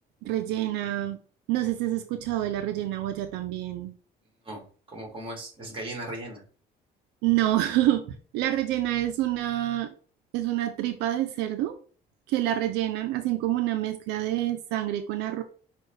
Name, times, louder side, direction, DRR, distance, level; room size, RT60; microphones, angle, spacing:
voice 1, 0.2-1.2 1.5-4.0 7.2-9.9 10.3-11.8 12.3-15.4, right 14 dB, 90° right, 8 dB, 0.5 m, -27 dB
voice 2, 4.4-6.4, right 1 dB, 30° right, 0 dB, 2.0 m, -38 dB
6.2 x 2.3 x 3.2 m, 0.41 s
cardioid pair, 110°, 17 cm